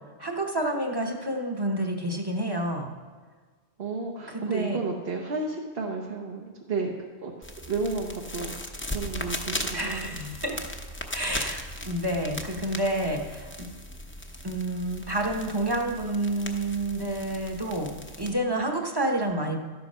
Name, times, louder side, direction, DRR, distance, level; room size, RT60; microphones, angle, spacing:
voice 1, 0.2-2.9 4.3-4.8 9.7-10.6 11.1-13.7 14.4-19.6, right 1 dB, 25° right, 1 dB, 1.0 m, -29 dB
voice 2, 3.8-6.9 7.2-7.3 7.7-8.5 8.9-10.1, right 3 dB, 65° right, 0 dB, 1.2 m, -32 dB
sound 1, 7.4-18.3, left 1 dB, 15° left, 0.7 m, -38 dB
12.5 x 8.2 x 5.6 m, 1.5 s
omnidirectional pair, 1.1 m